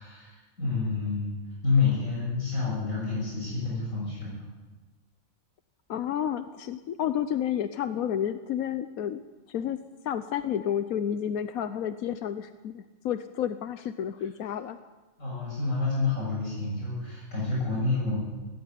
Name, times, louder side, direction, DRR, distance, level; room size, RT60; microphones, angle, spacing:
voice 1, 0.0-4.4 15.2-18.2, left 4 dB, 70° left, -5 dB, 7.9 m, -28 dB
voice 2, 5.9-9.2 9.5-9.8 10.0-14.8, left 9 dB, 90° left, 10 dB, 1.3 m, -30 dB
17.5 x 17.0 x 9.5 m, 1.2 s
omnidirectional pair, 1.4 m